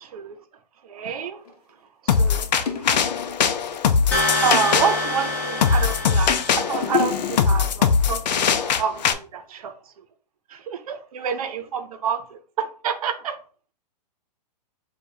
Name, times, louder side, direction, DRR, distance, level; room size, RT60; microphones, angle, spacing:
voice 1, 0.0-0.4 0.8-1.4 2.0-3.0 4.4-9.7 10.5-13.4, right 7 dB, 60° right, 0.8 m, -28 dB
sound 1, 1.4-1.5 2.2-2.3 2.7-3.5 4.0-4.7 5.4-6.0 6.3-7.9 8.7-8.8, left 7 dB, 60° left, 0.9 m, -29 dB
sound 2, 2.1-9.1, left 6 dB, 80° left, 0.6 m, -21 dB
sound 3, 4.1-7.0, left 1 dB, 10° left, 1.1 m, -26 dB
6.6 x 2.4 x 2.8 m
hypercardioid pair, 165°, 21 cm